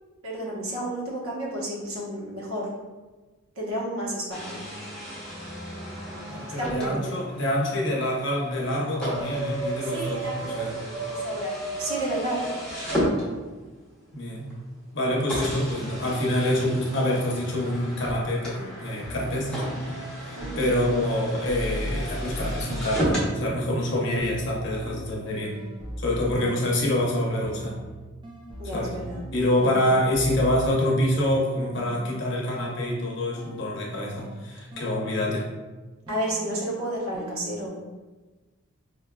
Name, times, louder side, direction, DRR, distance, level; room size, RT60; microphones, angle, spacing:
voice 1, 0.2-2.7 3.6-4.6 6.6-7.2 9.8-10.7 11.1-12.5 20.4-20.7 26.3-26.6 28.6-29.2 29.6-29.7 36.1-37.7, right 1 dB, 80° right, -4 dB, 0.9 m, -31 dB
sound 1, 4.3-13.8 14.5-14.6 15.3-23.3, right 1 dB, 5° left, 0.7 m, -33 dB
voice 2, 6.3-10.7 14.1-14.5 14.9-25.5 26.0-27.7 28.7-28.9 29.3-35.5, left 1 dB, 55° left, -3 dB, 0.7 m, -26 dB
sound 2, 19.0-20.1 20.4-27.1 27.4-31.4 31.7-35.5 36.1-37.7, equal, 20° right, 0.3 m, -39 dB
5.0 x 2.3 x 2.2 m, 1.3 s
head